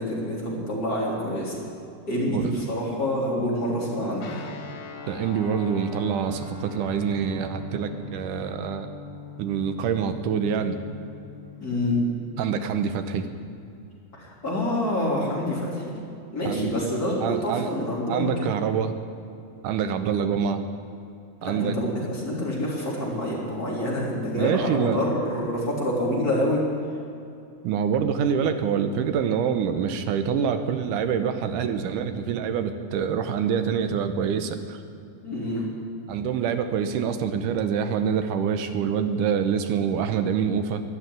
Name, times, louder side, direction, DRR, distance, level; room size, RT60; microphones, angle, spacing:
voice 1, 0.0-1.6 2.1-4.5 11.6-12.0 14.1-16.0 16.3-18.5 21.4-26.6 35.2-35.6, left 1 dB, 30° left, -5 dB, 3.7 m, -27 dB
Guitar, 4.2-12.7, left 5 dB, 60° left, 1.1 m, -42 dB
voice 2, 5.1-8.9 9.4-10.8 12.4-13.3 16.4-16.8 17.2-17.7 18.1-18.9 19.6-20.6 21.4-21.8 24.4-25.0 27.6-34.8 36.1-40.8, right 7 dB, 80° right, 8 dB, 2.5 m, -26 dB
13.5 x 11.0 x 9.3 m, 2.6 s
omnidirectional pair, 3.6 m